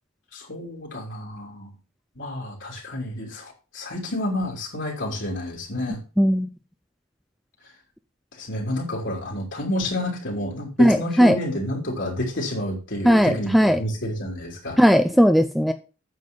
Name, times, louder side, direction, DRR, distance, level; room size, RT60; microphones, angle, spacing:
voice 1, 0.3-1.7 2.2-6.0 8.4-14.8, left 1 dB, 60° left, -1 dB, 3.1 m, -29 dB
voice 2, 6.2-6.5 10.8-11.4 13.0-13.8 14.8-15.7, equal, ahead, 8 dB, 0.4 m, -17 dB
9.3 x 7.5 x 5.3 m, 0.33 s
head